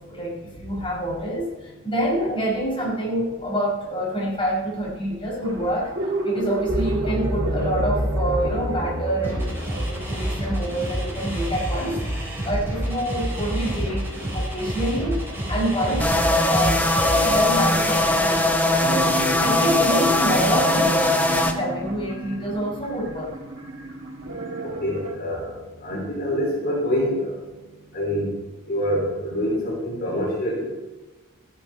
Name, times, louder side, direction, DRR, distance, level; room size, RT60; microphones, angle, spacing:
voice 1, 0.1-5.9 6.2-12.0 12.4-16.2 16.4-23.3, right 1 dB, 25° left, -4 dB, 5.1 m, -27 dB
sound 1, 5.4-13.0 13.5-13.6 13.8-25.1, right 1 dB, 65° right, 3.1 m, -30 dB
sound 2, 9.2-18.4, equal, 10° right, 4.2 m, -29 dB
sound 3, 16.0-21.5, left 2 dB, 5° left, 1.0 m, -20 dB
voice 2, 24.6-27.3 27.9-28.3 28.7-30.7, equal, 50° left, -4 dB, 4.3 m, -26 dB
14.5 x 11.5 x 4.5 m, 1.2 s
head